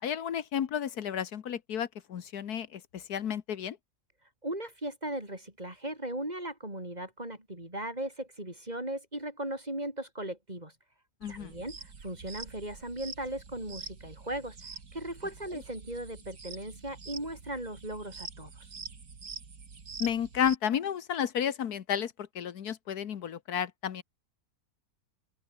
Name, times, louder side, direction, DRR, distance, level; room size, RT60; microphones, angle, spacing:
voice 1, 0.0-3.8 11.2-11.5 20.0-24.0, left 9 dB, 75° left, 1.6 m, -32 dB
voice 2, 4.4-10.7 11.3-18.7, right 1 dB, 25° right, 5.6 m, -38 dB
sound 1, 11.2-20.6, right 5 dB, 85° right, 3.0 m, -46 dB
open air
omnidirectional pair, 1.6 m